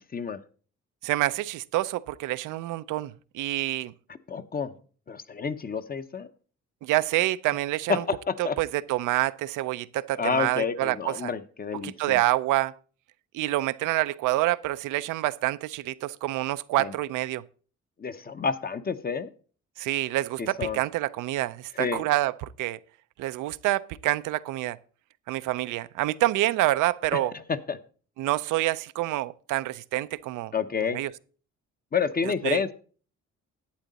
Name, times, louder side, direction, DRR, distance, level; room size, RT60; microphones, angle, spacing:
voice 1, 1.0-3.9 6.8-8.0 8.4-11.3 11.7-12.7 13.3-17.4 19.8-22.8 23.2-24.8 25.3-27.3 28.2-30.5 30.9-31.1 32.4-32.6, right 16 dB, 85° right, 0.5 m, -27 dB
voice 2, 4.3-4.7 5.1-6.3 7.9-8.6 10.2-12.2 16.8-16.9 18.0-19.3 20.4-20.8 21.8-22.0 27.1-27.8 30.5-31.0 31.9-32.7, left 5 dB, 30° left, 0.8 m, -29 dB
11.5 x 8.3 x 4.0 m
cardioid pair, 90°, 30 cm